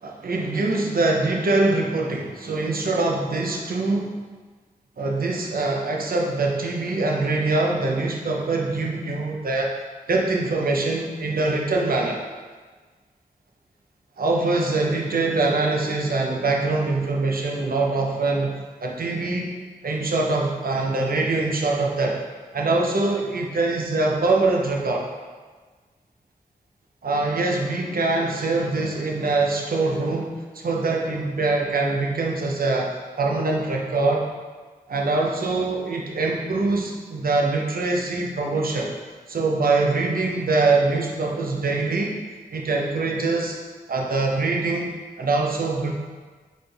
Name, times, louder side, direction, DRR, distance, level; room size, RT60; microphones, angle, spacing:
voice 1, 0.0-4.2 5.0-9.7 10.1-12.2 14.2-19.6 19.8-22.2 22.5-25.1 27.0-34.3 34.9-38.9 39.3-42.2 42.5-43.6 43.9-45.9, right 3 dB, 65° right, 0 dB, 0.7 m, -23 dB
4.1 x 3.6 x 3.3 m, 1.4 s
cardioid pair, 40°, 16 cm